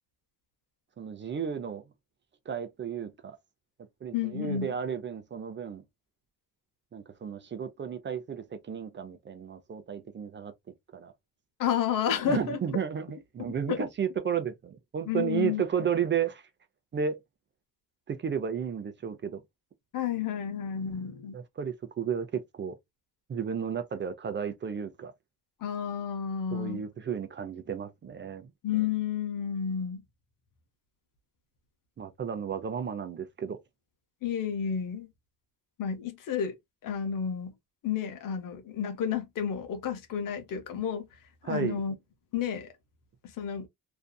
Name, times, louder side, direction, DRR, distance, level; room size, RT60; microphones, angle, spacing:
voice 1, 1.0-1.8 2.5-3.4 4.0-5.8 6.9-10.5 10.9-11.1 12.2-16.4 16.9-17.2 18.1-19.4 21.3-22.7 23.3-25.1 26.5-28.5 32.0-33.6 41.4-41.8, right 7 dB, 35° right, 0.5 m, -33 dB
voice 2, 4.1-4.7 11.6-12.6 13.7-13.9 15.1-15.6 19.9-21.4 25.6-26.8 28.6-30.0 34.2-35.1 35.8-36.5 36.8-37.5 37.8-41.1 41.4-41.9 42.3-42.7 43.4-43.7, left 8 dB, 70° left, 0.8 m, -31 dB
2.6 x 2.4 x 2.2 m
cardioid pair, 120°, 34 cm